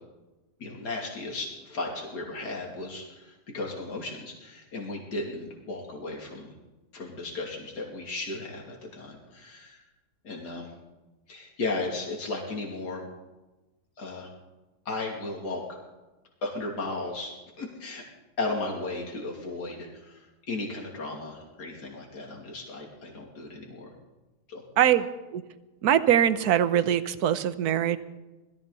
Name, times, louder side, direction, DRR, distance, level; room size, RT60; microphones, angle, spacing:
voice 1, 0.6-6.5 6.9-9.8 10.2-10.7 11.3-13.0 14.0-14.3 14.9-15.8 16.4-17.3 17.6-18.0 18.4-23.9 24.5-24.6, left 2 dB, 65° left, -2 dB, 3.4 m, -35 dB
voice 2, 24.8-25.1 25.3-25.4 25.8-28.0, right 10 dB, 65° right, 13 dB, 1.2 m, -22 dB
21.0 x 14.5 x 4.1 m, 1.1 s
omnidirectional pair, 1.9 m